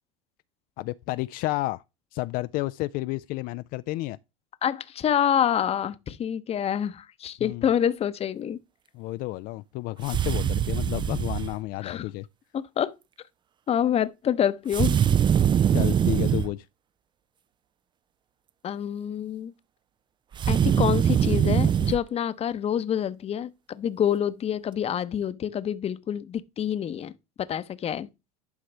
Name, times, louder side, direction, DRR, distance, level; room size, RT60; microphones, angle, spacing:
voice 1, 0.8-1.8 2.1-4.2 7.4-7.7 8.9-12.3 15.7-16.7, left 19 dB, 55° left, 0.4 m, -31 dB
voice 2, 4.6-8.6 11.8-12.0 12.5-12.9 13.7-15.0 18.6-19.5 20.5-27.1 27.5-28.1, left 9 dB, 35° left, 0.8 m, -27 dB
sound 1, 10.0-11.5 14.7-16.5 20.3-22.0, right 9 dB, 25° right, 0.4 m, -22 dB
11.5 x 4.8 x 3.3 m
hypercardioid pair, 80°, 17 cm